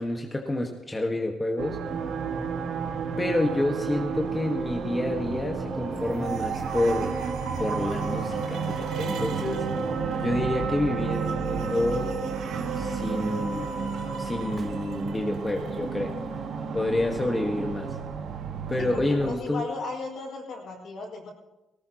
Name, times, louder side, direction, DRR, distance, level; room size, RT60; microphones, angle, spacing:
voice 1, 0.0-1.8 3.2-7.1 7.6-9.7 10.2-12.1 12.8-13.7 14.2-16.2 16.7-17.9 18.7-19.6, left 1 dB, 15° left, 1 dB, 1.5 m, -28 dB
sound 1, 1.6-19.4, right 6 dB, 70° right, 1.6 m, -32 dB
sound 2, 1.8-18.0, right 3 dB, 45° right, 4.1 m, -38 dB
sound 3, 14.5-15.7 19.6-19.7, right 2 dB, 25° right, 1.6 m, -47 dB
voice 2, 18.8-21.3, left 3 dB, 65° left, -2 dB, 5.5 m, -36 dB
18.5 x 18.5 x 3.0 m, 1.0 s
cardioid pair, 95°, 0 cm